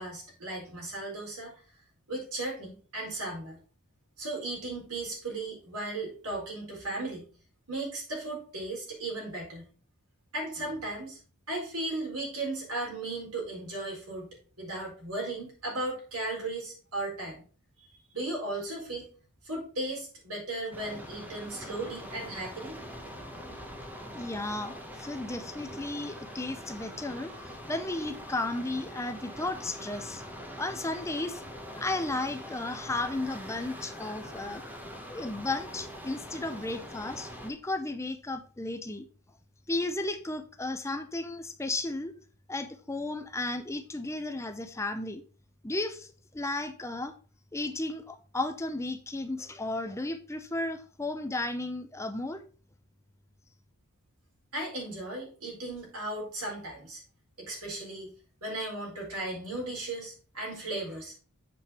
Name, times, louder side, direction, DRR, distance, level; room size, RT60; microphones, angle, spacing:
voice 1, 0.0-1.5 2.1-3.6 4.2-7.3 7.7-9.7 10.3-11.2 11.5-17.4 17.8-17.9 18.1-19.1 19.4-22.8 54.5-57.0 57.4-58.1 58.4-61.1, right 2 dB, 85° right, -2 dB, 4.3 m, -36 dB
sound 1, 20.7-37.5, equal, 10° right, 1.0 m, -43 dB
voice 2, 24.1-30.2 30.6-31.4 31.8-34.6 35.1-39.1 39.7-42.1 42.5-45.2 45.6-47.1 47.5-52.4, left 2 dB, 15° left, 8 dB, 0.5 m, -34 dB
7.7 x 5.0 x 4.3 m, 0.39 s
head